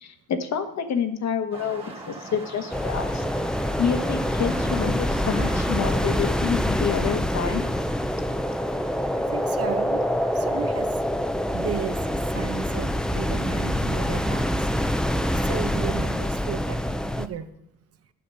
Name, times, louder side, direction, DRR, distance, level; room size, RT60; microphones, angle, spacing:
voice 1, 0.0-3.2 3.8-7.6, left 7 dB, 60° left, 7 dB, 1.4 m, -28 dB
sound 1, 1.5-10.7, right 2 dB, 20° right, 1.8 m, -42 dB
sound 2, 2.7-17.3, equal, ahead, 0.5 m, -25 dB
voice 2, 9.1-10.0 10.3-10.9 11.5-14.9 15.2-17.5, right 8 dB, 50° right, 10 dB, 1.0 m, -34 dB
11.5 x 6.8 x 5.6 m, 0.78 s
cardioid pair, 90°, 30 cm